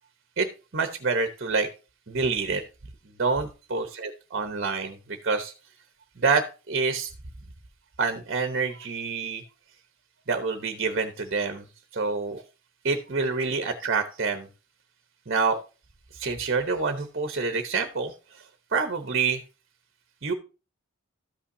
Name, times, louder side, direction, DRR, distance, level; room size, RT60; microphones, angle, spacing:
voice 1, 0.7-1.7 2.1-2.6 3.2-5.5 6.2-7.1 8.0-9.4 10.3-11.6 11.9-12.4 12.8-14.5 15.3-15.6 16.1-18.1 18.7-19.4 20.2-20.3, right 4 dB, 50° right, 8 dB, 0.9 m, -27 dB
13.5 x 5.7 x 2.7 m, 0.31 s
head